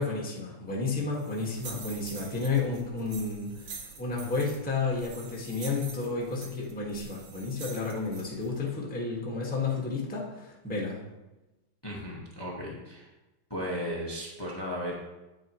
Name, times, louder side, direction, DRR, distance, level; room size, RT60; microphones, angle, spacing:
voice 1, 0.0-11.0, left 4 dB, 5° left, -3 dB, 0.6 m, -32 dB
sound 1, 1.1-8.6, right 5 dB, 65° right, 1.2 m, -46 dB
voice 2, 11.8-13.1 13.5-14.9, equal, 40° left, -4 dB, 0.3 m, -35 dB
9.5 x 8.9 x 3.1 m, 1.0 s
omnidirectional pair, 3.5 m